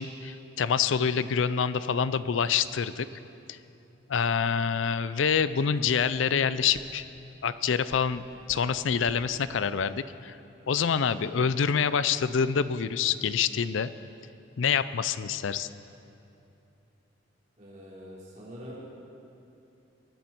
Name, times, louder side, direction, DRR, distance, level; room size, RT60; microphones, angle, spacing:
voice 1, 0.0-3.1 3.5-3.6 4.1-7.0 7.4-8.2 8.5-10.4 10.7-13.9 14.6-15.7, left 6 dB, 75° left, 15 dB, 0.4 m, -26 dB
sound 1, 5.9-11.3, equal, 15° right, 0.9 m, -55 dB
voice 2, 17.6-18.9, equal, 40° right, -6 dB, 3.7 m, -44 dB
22.0 x 9.6 x 4.5 m, 2.7 s
head